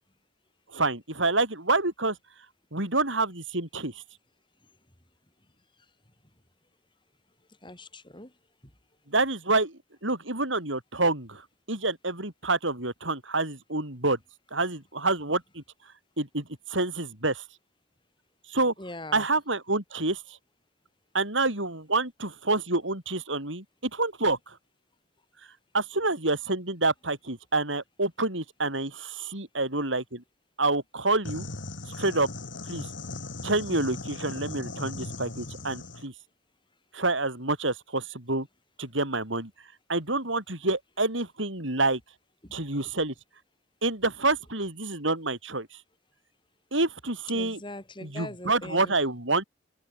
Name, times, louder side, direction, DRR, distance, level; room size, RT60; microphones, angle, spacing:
voice 1, 0.7-2.2 2.7-3.9 9.1-9.7 10.0-11.4 11.7-14.2 14.5-15.6 16.2-17.4 18.5-18.7 19.1-20.2 21.1-24.6 25.7-30.2 30.6-31.4 32.0-32.3 32.6-32.9 33.4-36.1 36.9-38.5 38.8-39.5 39.9-42.0 42.5-43.1 43.8-45.7 46.7-47.6 48.0-49.4, right 2 dB, 75° right, 7.4 m, -27 dB
voice 2, 7.6-8.3 18.8-19.3 42.4-42.6 47.3-49.0, left 1 dB, 25° left, 5.3 m, -41 dB
sound 1, 31.2-36.1, left 2 dB, 70° left, 2.8 m, -38 dB
head